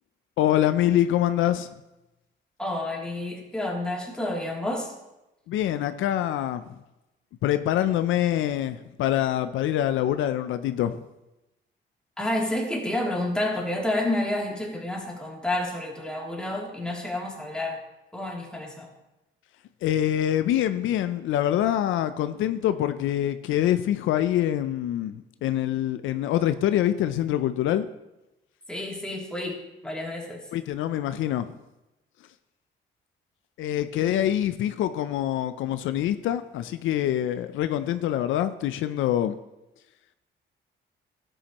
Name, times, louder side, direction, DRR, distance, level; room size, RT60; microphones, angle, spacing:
voice 1, 0.4-1.7 5.5-6.7 7.4-11.0 19.8-27.9 30.5-31.5 33.6-39.4, left 12 dB, 80° left, 11 dB, 0.5 m, -25 dB
voice 2, 2.6-4.9 12.2-17.8 18.1-18.9 28.7-29.6 29.8-30.4 34.0-34.2, left 1 dB, 5° left, -3 dB, 2.8 m, -29 dB
12.5 x 9.0 x 3.0 m, 0.97 s
cardioid pair, 90°, 20 cm